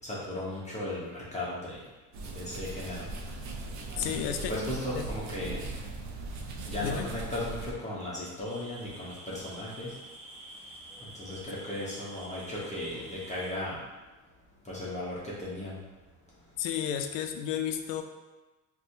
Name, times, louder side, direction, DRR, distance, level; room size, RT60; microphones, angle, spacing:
voice 1, 0.0-1.8 2.3-3.0 4.0-4.2 4.5-5.6 6.6-9.9 11.2-13.8 14.6-15.8, left 1 dB, 15° left, -7 dB, 0.7 m, -36 dB
sound 1, 2.1-7.7, right 2 dB, 45° right, 0.5 m, -39 dB
voice 2, 4.0-4.5 4.9-5.1 6.8-7.1 16.6-18.0, left 9 dB, 75° left, 6 dB, 0.5 m, -32 dB
sound 2, 8.5-13.5, right 1 dB, 15° right, 0.8 m, -47 dB
4.1 x 2.2 x 2.6 m, 1.2 s
supercardioid pair, 120°, 42 cm